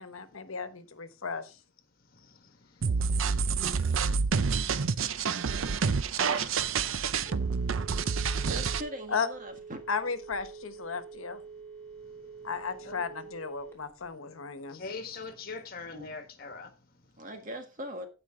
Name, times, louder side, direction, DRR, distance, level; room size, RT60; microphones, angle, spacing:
voice 1, 0.0-1.5 6.2-6.7 9.1-9.3 9.9-11.4 12.4-14.8, left 5 dB, 85° left, 1.2 m, -35 dB
sound 1, 2.8-8.8, right 5 dB, 75° right, 0.6 m, -28 dB
Telephone, 7.2-14.1, right 5 dB, 10° left, 2.8 m, -47 dB
voice 2, 8.4-9.8 17.2-18.1, equal, 40° right, 1.7 m, -40 dB
voice 3, 14.7-16.7, left 4 dB, 45° left, 1.7 m, -41 dB
15.5 x 5.2 x 3.8 m
head